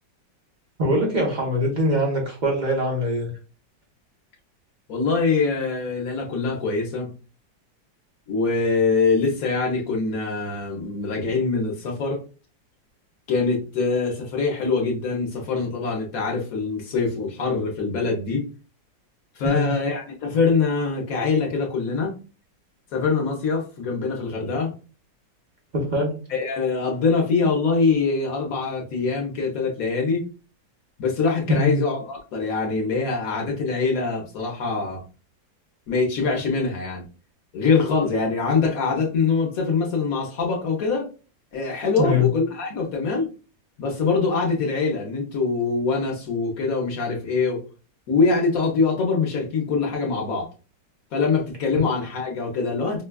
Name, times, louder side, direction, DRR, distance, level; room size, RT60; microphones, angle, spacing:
voice 1, 0.8-3.3 19.4-19.7 25.9-26.1 31.5-31.8 42.0-42.3, left 1 dB, 35° right, 0.7 m, -22 dB
voice 2, 4.9-7.1 8.3-12.2 13.3-18.5 19.3-22.1 22.9-24.7 26.3-30.3 31.0-35.0 35.9-37.0 37.5-41.1 41.5-43.3 43.8-47.6 48.1-50.5 51.1-53.0, left 4 dB, 60° left, 1.0 m, -23 dB
5.1 x 2.2 x 2.2 m
omnidirectional pair, 2.0 m